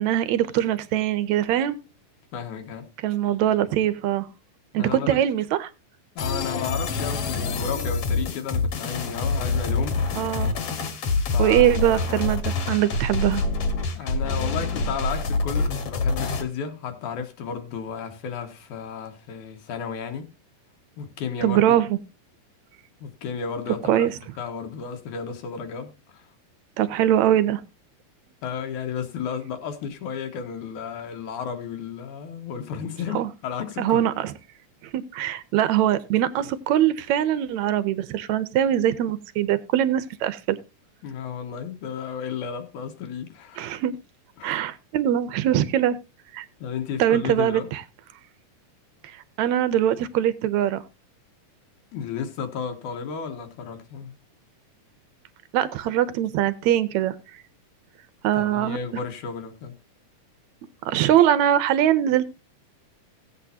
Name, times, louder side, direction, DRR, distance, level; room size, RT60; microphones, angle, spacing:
voice 1, 0.0-1.8 3.0-4.3 4.7-5.7 10.2-10.5 11.4-13.4 21.4-22.0 23.9-24.1 26.8-27.6 33.1-33.3 33.8-34.3 34.9-40.6 43.6-44.0 44.4-46.0 46.3-46.5 47.0-47.8 49.4-50.8 55.5-57.2 58.2-58.8 60.9-62.2, right 11 dB, 75° right, 1.8 m, -22 dB
voice 2, 2.3-2.9 4.8-5.2 6.2-10.0 11.3-11.8 13.9-20.3 21.0-21.8 23.0-24.1 24.4-26.3 28.4-34.0 41.0-43.7 44.4-44.6 46.6-47.7 51.9-54.2 58.3-59.7, left 7 dB, 70° left, 2.5 m, -33 dB
sound 1, 6.2-16.4, left 3 dB, 55° left, 2.2 m, -26 dB
17.5 x 8.4 x 2.7 m
omnidirectional pair, 3.8 m